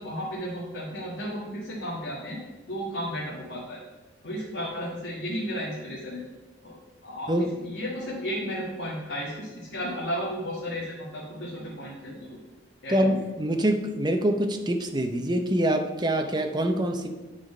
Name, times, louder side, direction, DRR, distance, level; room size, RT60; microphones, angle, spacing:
voice 1, 0.0-2.4 2.7-3.8 4.2-6.2 6.6-6.8 7.0-12.3 12.8-13.2, equal, 75° left, -5 dB, 1.8 m, -33 dB
voice 2, 12.9-17.1, right 1 dB, 25° right, 5 dB, 0.7 m, -25 dB
9.8 x 4.9 x 5.4 m, 1.2 s
head